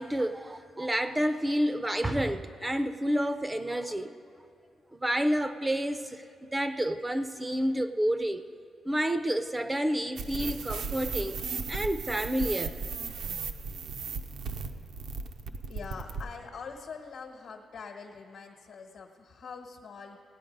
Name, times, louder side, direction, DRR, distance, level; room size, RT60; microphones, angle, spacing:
voice 1, 0.0-4.1 4.9-8.4 8.9-11.4 11.7-12.8, equal, 15° right, 10 dB, 0.4 m, -29 dB
sound 1, 10.2-16.3, right 4 dB, 80° right, 0.6 m, -36 dB
voice 2, 15.7-20.2, left 5 dB, 70° left, 1 dB, 1.0 m, -44 dB
17.0 x 9.1 x 5.2 m, 2.5 s
cardioid pair, 120°, 0 cm